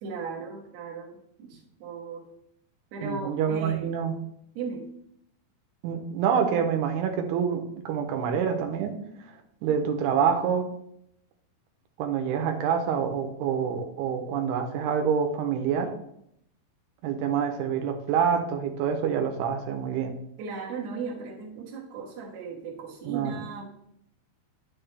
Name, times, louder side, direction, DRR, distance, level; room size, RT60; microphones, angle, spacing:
voice 1, 0.0-2.3 2.9-3.9 4.5-4.9 20.4-23.6, right 4 dB, 55° right, -2 dB, 2.3 m, -37 dB
voice 2, 3.0-4.2 5.8-9.0 9.3-10.7 12.0-15.9 17.0-20.1 23.1-23.4, right 7 dB, 90° right, 4 dB, 2.9 m, -27 dB
9.9 x 6.5 x 3.4 m, 0.74 s
omnidirectional pair, 4.5 m